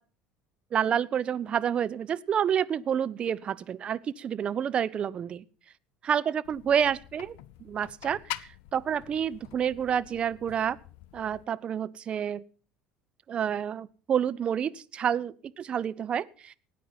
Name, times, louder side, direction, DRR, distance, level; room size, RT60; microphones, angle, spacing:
voice 1, 0.7-5.4 6.0-10.8 11.1-12.4 13.3-16.5, right 8 dB, 35° right, 14 dB, 0.7 m, -29 dB
sound 1, 6.4-11.5, left 14 dB, 55° left, 0.5 m, -45 dB
18.0 x 9.5 x 5.6 m, 0.42 s
figure-of-eight pair, 65°, 3 cm